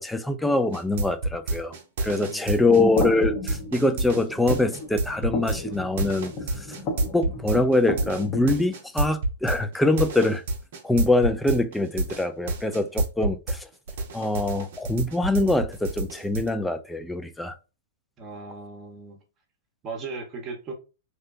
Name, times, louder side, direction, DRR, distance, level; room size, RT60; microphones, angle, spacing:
voice 1, 0.0-1.7 2.0-6.7 7.1-10.4 10.8-13.7 14.1-17.5, left 2 dB, 5° left, 0.3 m, -24 dB
sound 1, 0.7-13.6 13.9-16.5, right 2 dB, 65° right, 0.6 m, -28 dB
voice 2, 2.2-2.9 18.2-19.2 19.8-20.7, right 4 dB, 30° right, 0.9 m, -38 dB
sound 2, 2.7-8.5, left 2 dB, 40° left, 0.7 m, -34 dB
2.7 x 2.1 x 2.5 m
hypercardioid pair, 115°, 0 cm